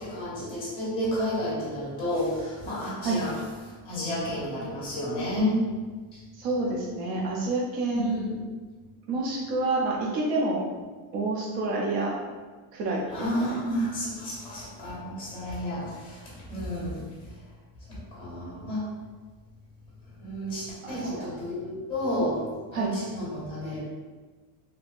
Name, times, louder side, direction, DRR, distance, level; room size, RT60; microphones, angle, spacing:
voice 1, 0.0-3.3 3.6-5.7 6.1-6.2 7.9-8.3 13.1-17.5 17.8-18.9 20.1-23.8, equal, 10° left, -6 dB, 1.1 m, -31 dB
voice 2, 6.3-8.4 9.1-10.6 11.1-12.1 12.7-13.0 13.4-13.6 20.8-21.3 22.7-22.9, right 2 dB, 75° right, -3 dB, 0.8 m, -28 dB
3.5 x 3.0 x 2.4 m, 1.4 s
cardioid pair, 180°, 42 cm